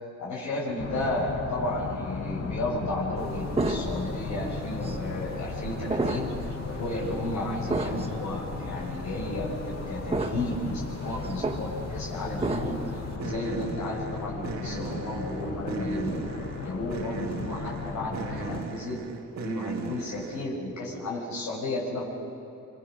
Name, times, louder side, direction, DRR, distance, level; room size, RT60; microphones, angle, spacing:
voice 1, 0.0-6.3 6.6-19.0 19.4-22.1, left 1 dB, 70° left, -4 dB, 6.7 m, -33 dB
sound 1, 0.8-18.6, left 5 dB, 50° left, 1.7 m, -36 dB
sound 2, 3.2-20.6, right 5 dB, 65° right, 2.0 m, -41 dB
sound 3, 3.5-4.2 4.8-5.0 5.9-6.5 6.9-7.1 7.7-8.1 8.8-8.9 10.1-10.6 10.9-11.6 12.4-12.9, right 2 dB, 20° right, 2.3 m, -30 dB
26.0 x 25.5 x 6.3 m, 2.9 s
cardioid pair, 90°, 30 cm